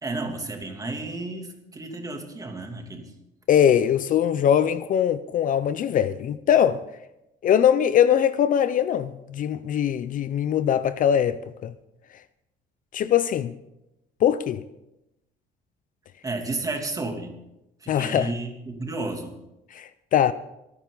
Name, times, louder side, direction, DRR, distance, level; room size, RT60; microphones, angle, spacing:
voice 1, 0.0-3.1 16.2-17.4 17.8-19.3, right 2 dB, 20° right, 2.8 m, -32 dB
voice 2, 3.5-6.8 7.4-11.7 12.9-13.5 14.2-14.6 17.9-18.3 19.7-20.3, left 9 dB, 50° left, 0.6 m, -21 dB
26.5 x 9.7 x 4.0 m
cardioid pair, 110°, 17 cm